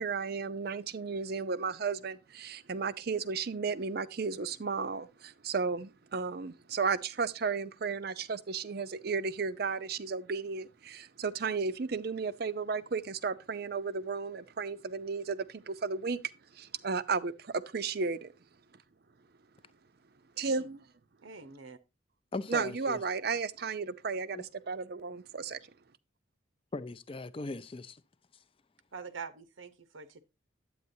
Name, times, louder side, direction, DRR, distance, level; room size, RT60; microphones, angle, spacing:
voice 1, 0.0-16.2 16.5-18.3 20.4-20.9 22.5-25.6, right 5 dB, 50° right, 0.5 m, -34 dB
voice 2, 21.2-21.8 28.9-30.2, right 5 dB, 85° right, 0.9 m, -45 dB
voice 3, 22.3-23.0 24.3-24.5 26.7-28.0, left 3 dB, 25° left, 0.4 m, -39 dB
9.4 x 8.6 x 2.7 m
head